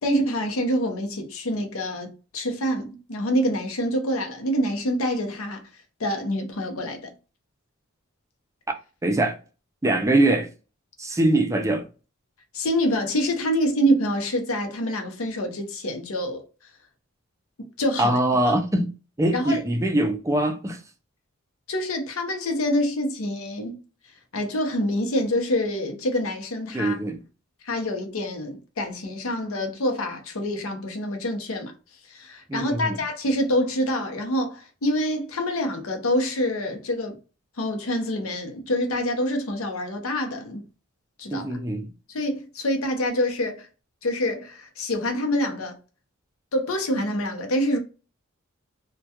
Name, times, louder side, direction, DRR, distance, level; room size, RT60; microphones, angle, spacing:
voice 1, 0.0-5.7 6.0-7.1 12.5-16.4 17.8-18.2 19.3-19.6 21.7-23.8 24.3-26.9 27.6-31.7 32.1-37.2 37.6-40.6 41.2-41.5 42.1-43.7 44.0-45.8 46.5-47.8, equal, 75° left, 0.7 m, -26 dB
voice 2, 9.0-9.4 9.8-10.5 11.0-11.9 18.0-18.9 19.2-20.8 26.7-27.2 32.5-33.0 41.3-41.9, right 1 dB, 15° right, 0.4 m, -23 dB
2.3 x 2.2 x 2.7 m
head